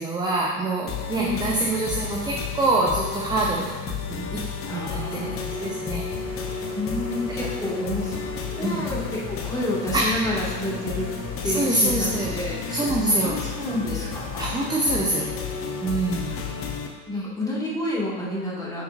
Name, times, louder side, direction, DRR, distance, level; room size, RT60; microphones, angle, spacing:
voice 1, 0.0-4.4 4.7-6.1 8.6-8.8 9.9-10.4 11.5-12.3 12.7-13.4 14.4-15.3 15.8-16.3, right 2 dB, 10° right, -2 dB, 0.7 m, -25 dB
sound 1, 0.9-16.9, left 6 dB, 30° left, 1.0 m, -32 dB
voice 2, 1.1-1.6 4.7-5.4 6.7-8.1 8.5-11.1 11.4-15.0 17.1-18.8, left 1 dB, 10° left, -6 dB, 2.1 m, -30 dB
sound 2, 6.1-11.7, right 3 dB, 40° right, 2.1 m, -45 dB
8.2 x 6.7 x 2.6 m, 1.3 s
figure-of-eight pair, 80°, 43 cm